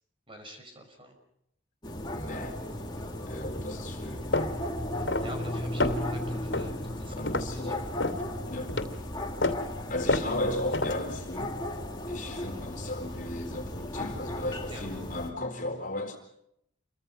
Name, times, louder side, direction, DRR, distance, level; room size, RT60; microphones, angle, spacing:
voice 1, 0.3-1.2 2.8-3.0 3.7-3.8 4.9-7.3 7.5-7.7 12.5-12.6 14.7-14.9, right 1 dB, 30° right, 3 dB, 5.5 m, -47 dB
sound 1, 1.8-15.3, left 1 dB, 25° left, 2.6 m, -36 dB
voice 2, 2.1-2.6 3.3-4.2 7.1-7.9 8.5-8.9 9.9-11.6 12.1-16.2, left 1 dB, 45° left, 3 dB, 4.3 m, -35 dB
sound 2, 4.3-4.5 5.1-5.5 5.8-6.2 6.5-6.8 7.3-7.5 8.0-8.2 8.7-8.9 9.4-9.6 10.1-10.3 10.7-11.0, left 2 dB, 85° left, 2.6 m, -28 dB
28.5 x 24.0 x 5.6 m, 0.76 s
head